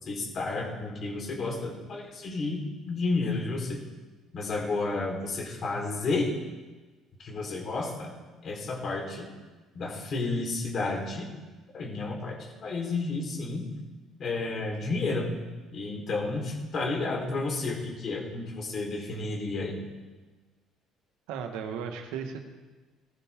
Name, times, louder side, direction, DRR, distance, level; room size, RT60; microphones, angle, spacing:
voice 1, 0.0-2.6 2.9-3.8 4.3-6.3 7.2-8.1 8.4-9.3 9.7-11.3 11.7-13.6 14.2-15.3 15.7-19.8, left 3 dB, 50° left, 0 dB, 4.2 m, -31 dB
voice 2, 21.3-22.4, right 7 dB, 90° right, 4 dB, 1.7 m, -35 dB
17.0 x 15.5 x 3.8 m, 1.2 s
cardioid pair, 100°, 0 cm